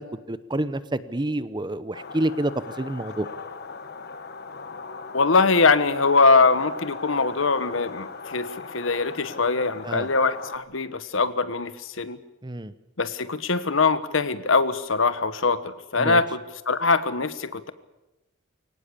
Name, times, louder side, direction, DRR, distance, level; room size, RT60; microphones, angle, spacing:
voice 1, 0.0-2.5 2.8-3.3 9.8-10.1 12.4-12.7 16.0-16.2, right 1 dB, 20° right, 14 dB, 0.9 m, -28 dB
sound 1, 1.9-10.6, left 4 dB, 50° left, 1.2 m, -38 dB
voice 2, 5.1-12.2 13.0-17.7, left 4 dB, 75° left, 13 dB, 1.2 m, -22 dB
23.5 x 18.0 x 8.4 m, 0.99 s
head